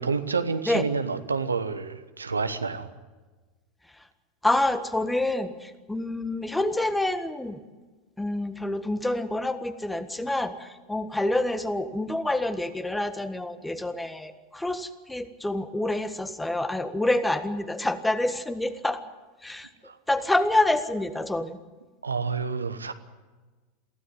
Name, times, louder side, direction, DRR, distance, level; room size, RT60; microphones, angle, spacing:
voice 1, 0.0-2.9 19.8-20.0 22.0-22.9, right 4 dB, 80° right, 10 dB, 1.1 m, -29 dB
voice 2, 4.4-7.6 8.2-19.0 19.4-19.7 20.1-21.6, left 1 dB, 5° left, 12 dB, 1.6 m, -27 dB
23.0 x 15.5 x 9.4 m, 1.3 s
figure-of-eight pair, 85°, 0 cm